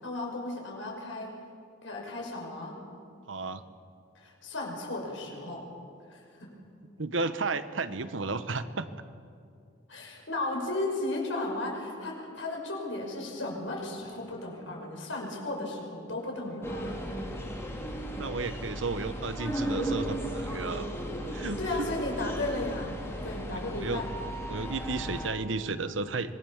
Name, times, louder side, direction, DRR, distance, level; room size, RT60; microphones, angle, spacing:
voice 1, 0.0-1.3 1.8-2.8 4.1-5.6 6.1-6.5 9.9-17.1 21.6-22.9 23.2-24.1, left 2 dB, 80° left, 0 dB, 6.0 m, -35 dB
voice 2, 3.3-3.6 7.0-8.9 18.0-20.9 21.3-21.6 23.5-24.0 24.5-26.3, right 3 dB, 85° right, 12 dB, 1.1 m, -33 dB
sound 1, 16.6-25.3, right 1 dB, 15° left, 2.9 m, -35 dB
25.5 x 21.5 x 7.3 m, 2.4 s
head